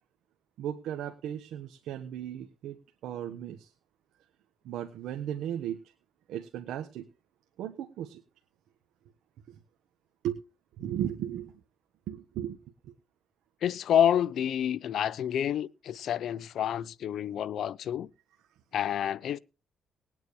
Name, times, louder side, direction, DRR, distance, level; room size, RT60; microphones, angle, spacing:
voice 1, 0.6-2.8 3.0-3.7 4.6-5.8 6.3-7.0 7.6-8.2 9.5-9.6 10.2-10.4 10.8-11.5 12.1-12.6 12.8-12.9, right 10 dB, 85° right, 1.2 m, -36 dB
voice 2, 13.6-18.1 18.7-19.4, left 10 dB, 70° left, 0.6 m, -28 dB
20.5 x 9.1 x 3.1 m
cardioid pair, 90°, 0 cm